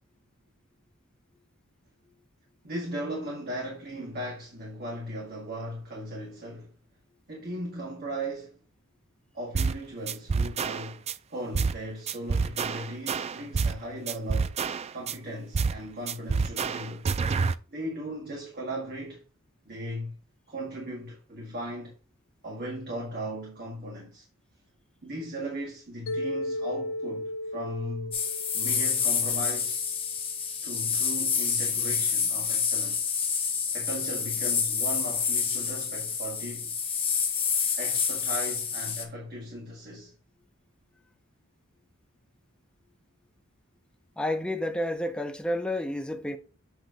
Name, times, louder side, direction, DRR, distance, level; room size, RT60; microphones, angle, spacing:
voice 1, 2.6-6.7 7.3-8.5 9.3-14.5 14.9-17.1 17.7-19.2 19.7-20.1 20.5-21.9 22.4-24.3 25.0-28.2 28.5-29.9 30.6-33.1 33.7-36.7 37.8-40.1, right 1 dB, 50° right, 1.8 m, -37 dB
sound 1, 9.5-9.8 10.1-11.1 11.5-11.8 12.1-13.8 14.1-15.1 15.5-17.5, right 4 dB, 30° right, 0.3 m, -28 dB
Mallet percussion, 26.1-30.2, left 1 dB, 70° left, 0.5 m, -36 dB
sound 2, 28.1-39.0, left 6 dB, 25° left, 1.4 m, -28 dB
voice 2, 44.2-46.4, left 1 dB, 5° left, 0.7 m, -30 dB
8.0 x 3.2 x 5.0 m
head